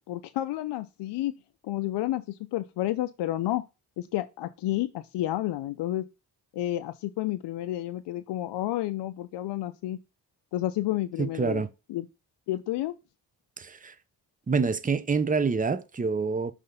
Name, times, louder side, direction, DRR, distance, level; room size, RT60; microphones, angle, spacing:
voice 1, 0.1-1.3 1.6-3.6 4.0-6.0 6.5-10.0 10.5-11.6 11.9-12.1 12.5-12.9, left 14 dB, 90° left, 0.5 m, -30 dB
voice 2, 11.2-11.7 13.6-13.9 14.5-16.5, right 5 dB, 20° right, 0.6 m, -27 dB
5.5 x 3.4 x 5.3 m
cardioid pair, 65°, 41 cm